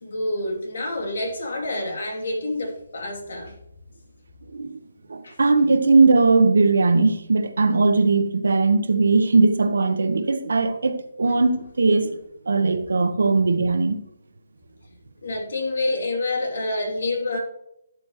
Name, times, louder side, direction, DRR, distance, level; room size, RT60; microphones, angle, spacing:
voice 1, 0.0-3.6 5.2-5.4 15.2-17.4, left 2 dB, 65° left, 2.9 m, -27 dB
voice 2, 5.1-12.2 12.4-14.0, right 3 dB, 75° right, 1.3 m, -19 dB
14.0 x 7.1 x 3.1 m
hypercardioid pair, 165°, 0 cm